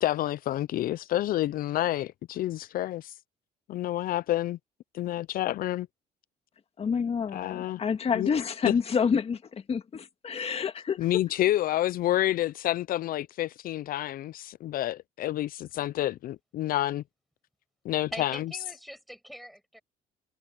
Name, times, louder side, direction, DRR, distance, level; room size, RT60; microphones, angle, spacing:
voice 1, 0.0-3.1 3.7-4.6 4.9-5.9 7.3-7.8 8.1-8.3 11.0-17.0 17.8-18.4, left 14 dB, 60° left, 0.4 m, -29 dB
voice 2, 6.8-11.2, left 6 dB, 35° left, 2.0 m, -28 dB
voice 3, 18.1-19.8, equal, ahead, 6.8 m, -42 dB
cardioid pair, 110°, 17 cm